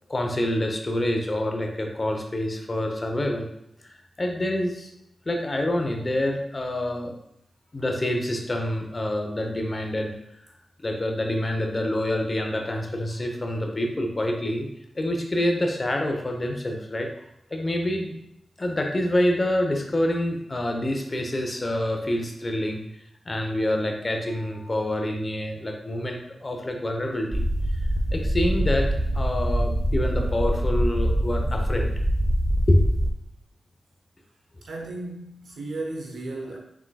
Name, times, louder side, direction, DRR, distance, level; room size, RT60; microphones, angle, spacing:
voice 1, 0.1-3.5 3.9-4.9 5.3-7.1 7.7-10.2 10.8-14.7 15.0-17.1 17.5-18.1 18.6-22.8 23.2-27.4 28.1-28.9 29.1-31.9 32.7-32.8, left 1 dB, 35° left, 3 dB, 0.8 m, -26 dB
sound 1, 27.3-33.1, equal, 10° right, 0.7 m, -24 dB
voice 2, 34.6-36.6, right 2 dB, 80° right, 0 dB, 0.9 m, -34 dB
4.8 x 3.7 x 2.3 m, 0.77 s
cardioid pair, 45°, 0 cm